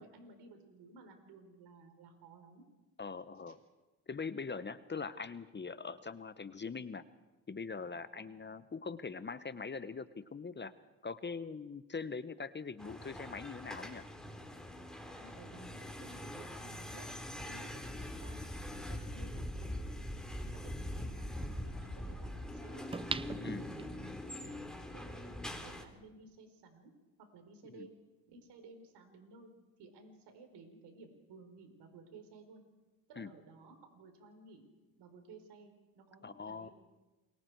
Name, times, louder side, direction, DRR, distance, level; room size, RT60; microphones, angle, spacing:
voice 1, 0.0-2.6 8.1-8.3 15.2-17.1 17.4-22.9 23.3-24.6 24.9-26.9 27.2-28.0 28.3-29.5 29.8-32.6 33.1-34.6 35.0-36.7, right 3 dB, 70° right, 6 dB, 4.2 m, -56 dB
voice 2, 3.0-3.6 4.1-7.0 7.5-10.7 11.0-14.0 23.4-23.6 27.8-27.9 33.2-33.3 36.2-36.7, left 5 dB, 25° left, 13 dB, 1.1 m, -42 dB
sound 1, 12.8-25.8, left 1 dB, ahead, 3.6 m, -43 dB
sound 2, 22.9-24.2 24.7-24.8, right 4 dB, 15° right, 0.6 m, -40 dB
28.5 x 23.0 x 4.7 m, 1.1 s
supercardioid pair, 65°, 41 cm